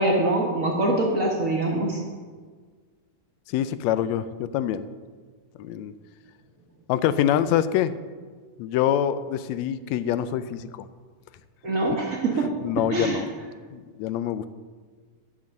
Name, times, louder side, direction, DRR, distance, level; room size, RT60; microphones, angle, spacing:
voice 1, 0.0-2.0 11.6-12.5 12.9-13.2, right 2 dB, 65° right, -1 dB, 0.8 m, -24 dB
voice 2, 3.5-4.9 5.6-5.9 6.9-7.9 8.6-10.9 12.6-13.3 13.7-14.5, left 10 dB, 80° left, 14 dB, 1.7 m, -25 dB
10.5 x 7.2 x 6.4 m, 1.5 s
omnidirectional pair, 3.3 m